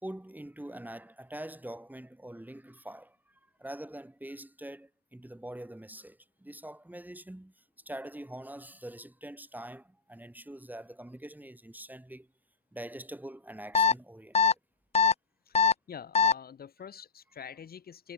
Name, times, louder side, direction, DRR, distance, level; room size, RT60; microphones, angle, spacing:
voice 1, 0.0-12.3 12.7-14.6, right 1 dB, 10° right, 2.7 m, -44 dB
sound 1, 13.7-13.9 14.3-14.5 14.9-15.1 15.5-15.7 16.1-16.3, left 5 dB, 40° left, 0.6 m, -21 dB
voice 2, 15.9-18.1, left 7 dB, 80° left, 7.8 m, -45 dB
cardioid pair, 60°, 15 cm